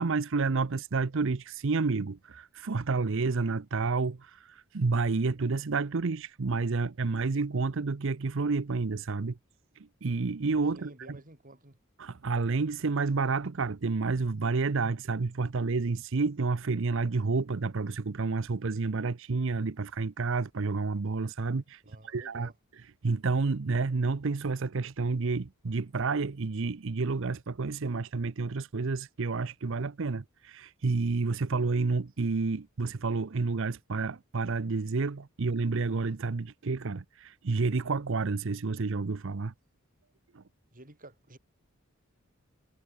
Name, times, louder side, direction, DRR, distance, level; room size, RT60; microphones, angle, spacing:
voice 1, 0.0-9.4 10.0-11.2 12.0-22.5 23.0-39.5 40.3-40.4, right 4 dB, 65° right, 0.7 m, -30 dB
voice 2, 10.7-11.8 21.8-22.5 40.7-41.4, right 1 dB, 40° right, 4.8 m, -51 dB
head